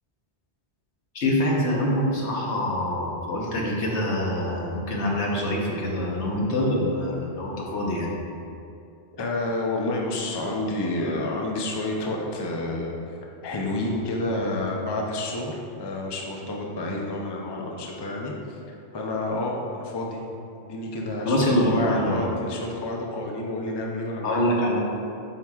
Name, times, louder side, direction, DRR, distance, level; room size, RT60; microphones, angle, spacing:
voice 1, 1.1-8.1 21.3-22.3 24.2-24.8, left 1 dB, 80° left, -3 dB, 1.4 m, -25 dB
voice 2, 9.2-12.9 13.4-18.3 18.9-20.2 20.6-24.4, left 2 dB, 30° left, -1 dB, 0.6 m, -29 dB
7.8 x 5.9 x 2.4 m, 2.6 s
omnidirectional pair, 1.1 m